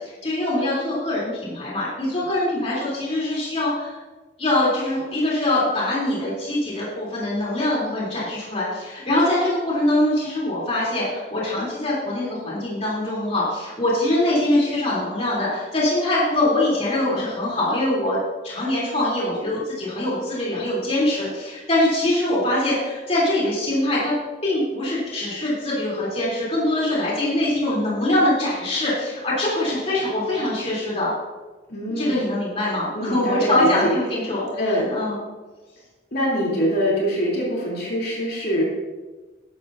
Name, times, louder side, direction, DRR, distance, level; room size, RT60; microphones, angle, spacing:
voice 1, 0.0-4.0 4.4-24.1 24.4-31.1 32.0-35.2, left 1 dB, 35° left, -6 dB, 3.2 m, -23 dB
voice 2, 31.7-32.2 32.9-33.9 34.6-34.9 36.1-38.6, equal, 55° left, -4 dB, 3.3 m, -23 dB
13.0 x 11.0 x 2.7 m, 1.2 s
head